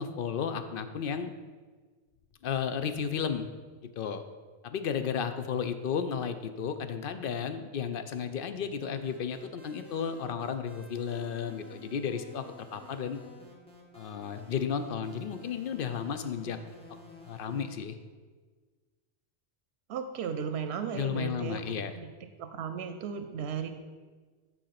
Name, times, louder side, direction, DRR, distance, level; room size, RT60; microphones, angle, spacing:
voice 1, 0.0-1.3 2.4-3.5 4.0-4.2 4.6-12.4 12.7-13.2 13.9-16.6 17.3-18.0 20.9-21.9, left 7 dB, 65° left, 9 dB, 0.8 m, -33 dB
sound 1, 9.0-17.8, left 1 dB, 5° left, 1.2 m, -52 dB
voice 2, 19.9-21.6 22.0-22.1 22.4-23.7, right 7 dB, 85° right, 8 dB, 0.8 m, -35 dB
9.1 x 4.2 x 5.8 m, 1.4 s
omnidirectional pair, 1.1 m